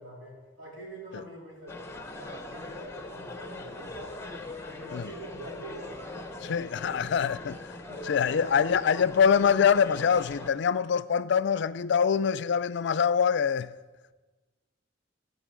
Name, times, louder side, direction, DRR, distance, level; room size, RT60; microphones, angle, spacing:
voice 1, 0.0-4.3 4.6-7.0 7.4-7.5 7.8-8.7, right 1 dB, 65° right, 3.5 m, -45 dB
sound 1, 1.7-10.5, left 2 dB, 15° left, 0.8 m, -41 dB
voice 2, 6.5-7.5 8.1-13.7, left 7 dB, 60° left, 0.4 m, -24 dB
14.5 x 5.4 x 7.5 m
head